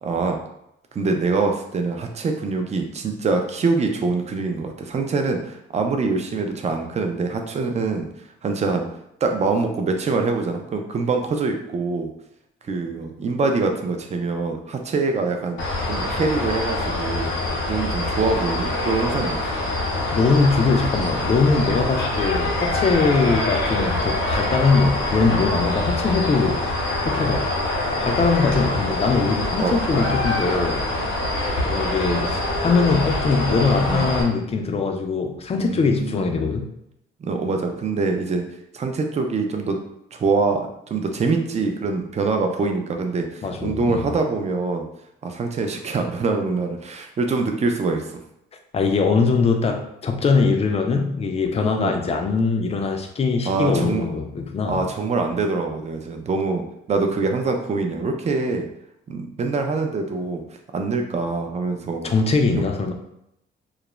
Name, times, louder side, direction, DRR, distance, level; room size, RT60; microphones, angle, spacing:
voice 1, 0.0-0.4 0.9-8.1 8.4-8.9 9.2-12.1 12.7-15.6 15.9-17.3 17.7-19.4 29.6-30.2 33.9-34.1 35.6-36.3 37.2-38.4 38.7-39.8 40.1-40.6 40.9-44.8 45.2-48.1 51.8-52.0 53.5-54.0 54.7-58.7 59.1-60.4 60.7-62.1 62.6-62.7, right 4 dB, 35° right, 4 dB, 0.4 m, -24 dB
sound 1, 15.6-34.2, left 2 dB, 80° left, 0.7 m, -25 dB
voice 2, 20.1-26.7 27.0-27.5 28.0-30.8 31.6-36.7 43.4-44.1 48.7-54.8 62.0-62.9, left 4 dB, 30° left, 4 dB, 0.4 m, -21 dB
2.3 x 2.0 x 3.0 m, 0.80 s
cardioid pair, 90°, 20 cm